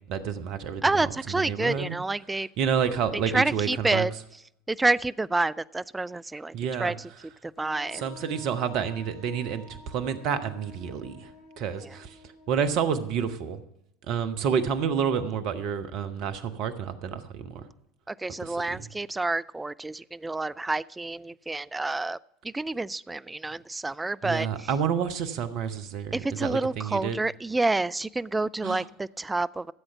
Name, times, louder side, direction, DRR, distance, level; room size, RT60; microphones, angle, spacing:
voice 1, 0.1-0.8 1.3-1.9 2.6-4.1 6.5-7.0 7.9-11.3 11.6-12.1 12.5-13.6 14.1-17.6 18.4-18.8 24.2-27.2 28.6-28.8, right 7 dB, 50° right, 13 dB, 1.0 m, -29 dB
voice 2, 0.8-2.5 3.3-4.1 4.7-6.5 6.8-7.1 7.4-8.0 11.8-12.0 18.1-22.2 22.4-24.7 26.1-29.7, right 2 dB, 10° right, 17 dB, 0.3 m, -28 dB
Wind instrument woodwind instrument, 7.6-13.3, left 4 dB, 55° left, 2.8 m, -50 dB
14.5 x 7.9 x 5.8 m, 0.81 s
figure-of-eight pair, 70°, 0 cm